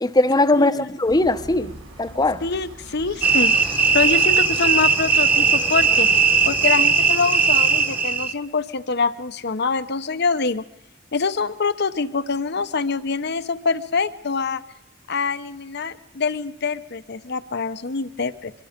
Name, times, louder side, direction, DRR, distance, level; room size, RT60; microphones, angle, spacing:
voice 1, 0.0-1.7 2.0-2.4, left 2 dB, 20° left, 0.9 m, -19 dB
voice 2, 0.5-0.9 2.4-6.1 6.5-10.6 11.1-14.6 15.1-18.5, left 4 dB, 60° left, 0.9 m, -25 dB
sound 1, 1.0-6.7, right 1 dB, 80° right, 4.3 m, -42 dB
sound 2, 3.2-8.3, right 5 dB, 10° right, 1.2 m, -18 dB
24.5 x 23.5 x 5.2 m
head